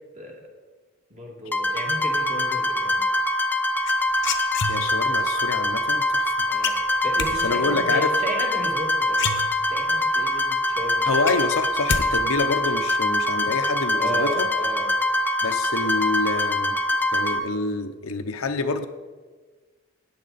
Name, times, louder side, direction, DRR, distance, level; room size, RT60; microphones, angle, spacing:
voice 1, 1.1-3.0 6.5-6.8 7.0-9.4 9.7-11.2 14.0-14.9, equal, 35° right, 0 dB, 2.1 m, -34 dB
sound 1, 1.5-17.4, left 1 dB, 10° left, 0.6 m, -24 dB
sound 2, 3.8-5.2 6.6-7.3 8.7-8.8 9.1-10.0 10.4-10.5 10.8-12.0 12.3-12.8, left 6 dB, 55° left, 0.9 m, -28 dB
voice 2, 4.7-6.5 7.4-8.2 11.0-14.5 15.4-16.8 17.1-18.9, left 3 dB, 90° left, 8 dB, 0.8 m, -27 dB
14.0 x 9.4 x 4.1 m, 1.4 s
head